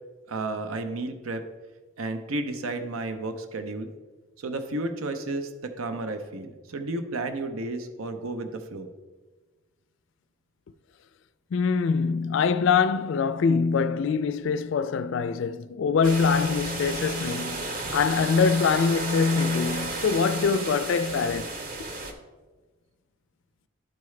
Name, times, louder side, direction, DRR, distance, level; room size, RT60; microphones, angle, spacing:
voice 1, 0.3-1.4 2.0-3.9 4.4-8.9, right 2 dB, 85° right, 0.7 m, -32 dB
voice 2, 11.5-21.5, left 5 dB, 60° left, 0.3 m, -24 dB
sound 1, 16.0-22.1, right 2 dB, 40° right, 0.8 m, -33 dB
12.0 x 4.7 x 3.2 m
head